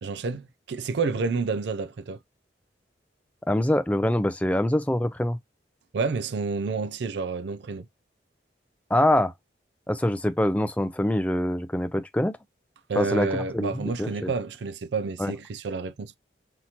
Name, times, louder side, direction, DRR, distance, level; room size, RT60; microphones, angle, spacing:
voice 1, 0.0-2.2 5.9-7.8 12.9-16.2, right 4 dB, 70° right, 0.4 m, -29 dB
voice 2, 3.5-5.4 8.9-9.3 9.9-12.4 13.0-14.3 15.2-15.3, left 1 dB, 10° left, 0.4 m, -24 dB
5.8 x 2.9 x 2.8 m
head